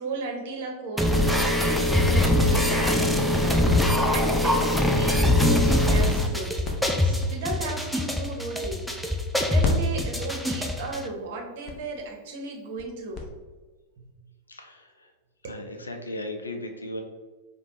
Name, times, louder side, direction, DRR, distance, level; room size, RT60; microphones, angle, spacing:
voice 1, 0.0-3.6 4.1-6.6 7.0-8.9 9.4-13.3 15.4-15.6, right 2 dB, 50° right, 1 dB, 0.8 m, -35 dB
sound 1, 1.0-11.0, left 1 dB, ahead, 0.4 m, -22 dB
sound 2, 5.6-9.3 9.6-13.2, left 4 dB, 35° left, 0.7 m, -35 dB
voice 2, 14.5-15.1 15.5-17.0, left 1 dB, 75° left, 4 dB, 0.5 m, -37 dB
4.9 x 2.2 x 2.9 m, 1.3 s
figure-of-eight pair, 90°, 0 cm